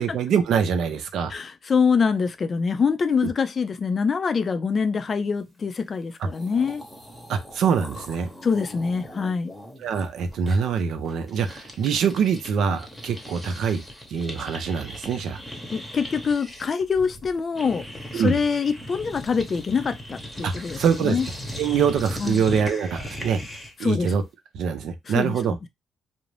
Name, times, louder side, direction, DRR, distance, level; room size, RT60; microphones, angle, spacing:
voice 1, 0.0-1.3 3.2-3.3 7.3-8.3 9.8-13.8 14.1-15.4 18.1-18.4 20.4-21.2 21.6-23.4 23.8-24.2 24.5-25.6, right 6 dB, 75° right, 0.5 m, -24 dB
voice 2, 1.3-6.8 8.4-9.5 15.7-17.9 18.1-21.3 22.2-22.4 23.8-24.1 25.1-25.4, left 5 dB, 40° left, 0.4 m, -24 dB
sound 1, 6.0-6.1 6.3-12.5 12.8-23.9, equal, 5° left, 0.9 m, -39 dB
2.5 x 2.0 x 3.1 m
cardioid pair, 90°, 0 cm